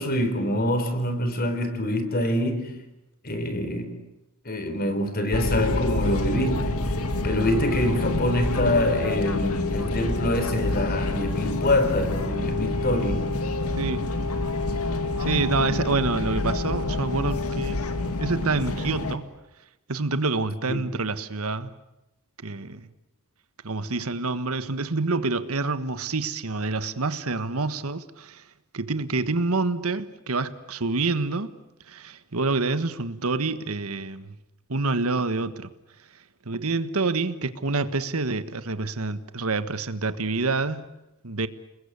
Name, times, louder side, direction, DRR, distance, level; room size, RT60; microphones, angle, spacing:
voice 1, 0.0-2.8 3.2-4.0 4.4-6.9 7.2-13.3 20.7-20.8, left 1 dB, 45° left, 4.0 m, -25 dB
sound 1, 5.3-19.2, left 2 dB, 80° left, 2.4 m, -27 dB
voice 2, 13.8-14.1 15.2-17.8 18.2-19.3 19.9-21.7 22.4-22.9 23.6-28.4 28.7-31.5 31.9-34.3 34.7-35.7 36.4-40.8 41.2-41.5, right 3 dB, 75° right, 1.5 m, -27 dB
30.0 x 21.0 x 8.3 m
head